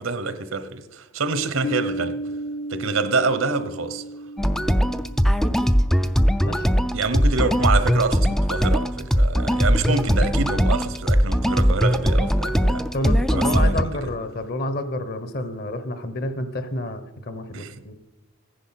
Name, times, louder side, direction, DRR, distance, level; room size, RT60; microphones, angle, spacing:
voice 1, 0.0-2.2 2.7-4.0 6.9-12.9 13.3-14.0 17.5-17.7, right 4 dB, 75° right, 1.0 m, -26 dB
Piano, 1.6-7.0, right 1 dB, 70° left, 1.7 m, -34 dB
sound 1, 4.4-13.8, equal, ahead, 0.3 m, -20 dB
voice 2, 12.9-17.9, left 1 dB, 45° left, 1.1 m, -29 dB
15.0 x 10.0 x 5.9 m
head